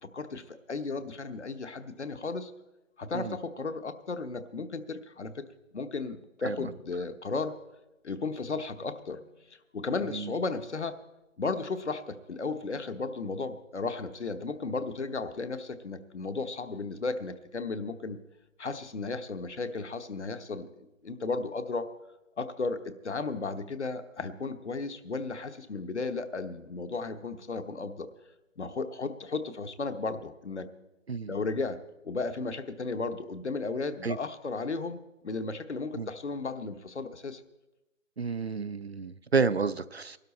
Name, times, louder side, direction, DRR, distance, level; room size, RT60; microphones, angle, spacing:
voice 1, 0.0-2.5 3.0-5.5 5.7-7.6 8.0-9.2 9.7-11.0 11.4-18.2 18.6-21.9 22.4-28.1 28.6-30.7 31.3-37.4, left 3 dB, 60° left, 10 dB, 1.1 m, -34 dB
voice 2, 38.2-40.2, right 5 dB, 55° right, 15 dB, 0.5 m, -30 dB
19.0 x 12.5 x 4.2 m, 0.98 s
figure-of-eight pair, 165°, 39 cm